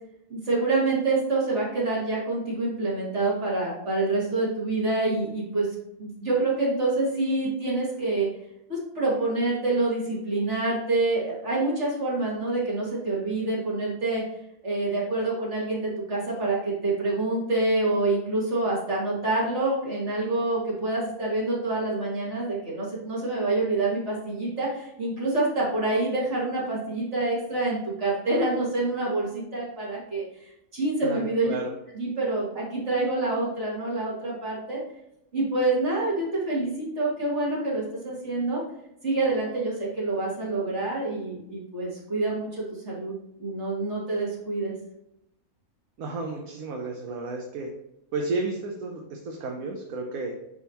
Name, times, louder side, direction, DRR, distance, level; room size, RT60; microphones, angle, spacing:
voice 1, 0.3-5.7 6.0-8.3 8.7-14.2 14.6-31.5 31.9-34.8 35.3-38.6 39.0-44.7, right 2 dB, 55° right, -8 dB, 3.0 m, -27 dB
voice 2, 31.0-31.7 46.0-47.7 48.1-50.3, right 3 dB, 75° right, 1 dB, 1.3 m, -32 dB
10.0 x 3.6 x 2.9 m, 0.83 s
omnidirectional pair, 1.5 m